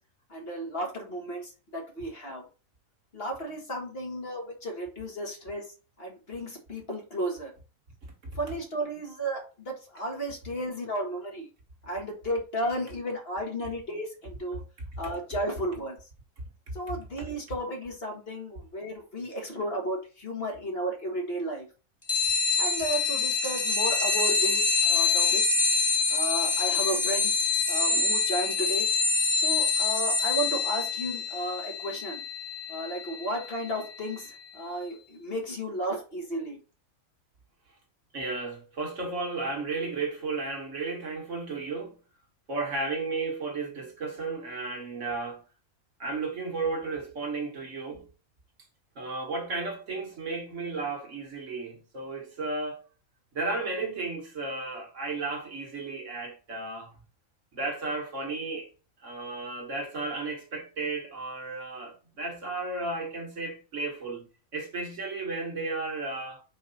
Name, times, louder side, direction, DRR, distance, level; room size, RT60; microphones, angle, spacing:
voice 1, 0.3-2.4 3.1-5.6 6.0-7.5 8.4-11.5 11.8-14.6 15.0-16.0 16.7-21.7 22.6-25.4 26.1-27.3 27.7-28.9 29.4-32.2 32.7-36.6, right 1 dB, 45° left, 1.8 m, -33 dB
sound 1, 22.1-34.2, left 4 dB, 20° left, 1.3 m, -26 dB
voice 2, 38.1-41.9 42.5-45.4 46.0-48.1 49.0-52.8 53.3-56.9 57.5-58.7 59.0-64.2 64.5-66.4, right 3 dB, 60° right, 1.8 m, -33 dB
5.0 x 4.6 x 4.1 m
omnidirectional pair, 1.5 m